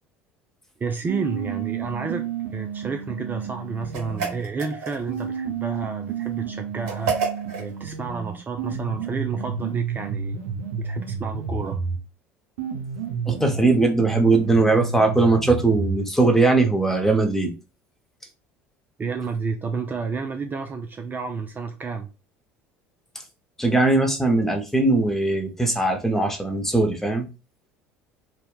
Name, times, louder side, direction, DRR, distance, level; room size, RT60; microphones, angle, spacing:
voice 1, 0.8-2.3 2.5-7.2 7.6-10.4 10.8-11.8 19.0-22.1, right 5 dB, 25° right, 0.4 m, -30 dB
sound 1, 1.1-4.4 5.1-12.0 12.6-16.0, right 6 dB, 80° right, 0.6 m, -31 dB
sound 2, 3.9-5.2 6.9-7.7, right 5 dB, 65° right, 1.2 m, -29 dB
voice 2, 13.3-17.5 23.6-27.3, right 2 dB, 5° left, 0.7 m, -20 dB
2.8 x 2.1 x 2.2 m
hypercardioid pair, 70°, 7 cm